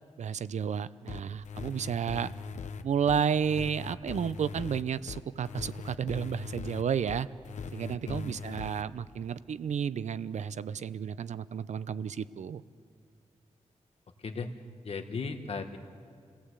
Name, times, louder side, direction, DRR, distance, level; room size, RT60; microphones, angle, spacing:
voice 1, 0.2-2.3 2.8-7.3 7.7-12.6, right 7 dB, 70° right, 16 dB, 0.6 m, -32 dB
sound 1, 1.1-8.8, left 5 dB, 75° left, 0.9 m, -40 dB
voice 2, 14.8-15.8, left 4 dB, 55° left, 6 dB, 1.7 m, -36 dB
28.5 x 17.5 x 8.2 m, 2.1 s
wide cardioid pair, 125°, 12 cm